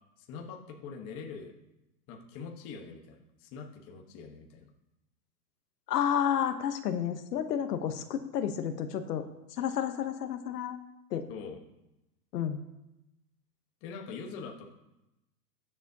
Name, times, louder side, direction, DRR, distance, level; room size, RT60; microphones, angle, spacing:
voice 1, 0.2-1.5 2.1-4.7 11.3-11.6 13.8-14.7, left 5 dB, 25° left, 2 dB, 1.1 m, -43 dB
voice 2, 5.9-9.2 9.6-10.8 11.1-11.3 12.3-12.6, left 9 dB, 70° left, 7 dB, 1.1 m, -31 dB
19.5 x 7.2 x 2.8 m, 0.94 s
hypercardioid pair, 150°, 50 cm